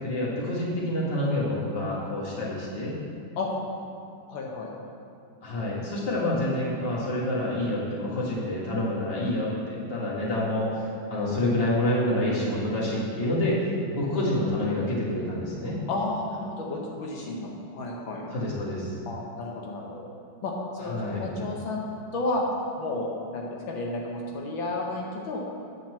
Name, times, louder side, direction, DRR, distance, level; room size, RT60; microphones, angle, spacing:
voice 1, 0.0-2.9 5.4-13.6 13.9-15.8 18.3-19.0 20.8-21.3, left 1 dB, 30° left, -6 dB, 1.9 m, -28 dB
voice 2, 4.3-4.7 15.9-18.3 19.1-20.0 20.4-21.9 22.1-22.4 22.8-25.4, left 2 dB, 80° left, -1 dB, 1.7 m, -32 dB
9.4 x 4.4 x 7.4 m, 2.5 s
omnidirectional pair, 2.2 m